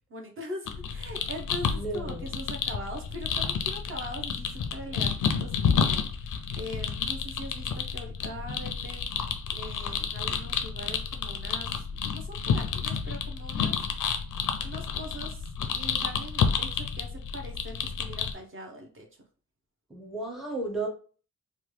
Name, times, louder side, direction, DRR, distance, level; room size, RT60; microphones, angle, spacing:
voice 1, 0.1-9.2 9.5-13.8 14.6-19.2, equal, 40° right, 1 dB, 0.7 m, -42 dB
sound 1, 0.7-18.3, left 6 dB, 75° left, 0.5 m, -30 dB
voice 2, 1.6-2.3 19.9-20.9, right 2 dB, ahead, 0 dB, 0.6 m, -34 dB
3.0 x 2.2 x 3.1 m, 0.40 s
wide cardioid pair, 125°, 32 cm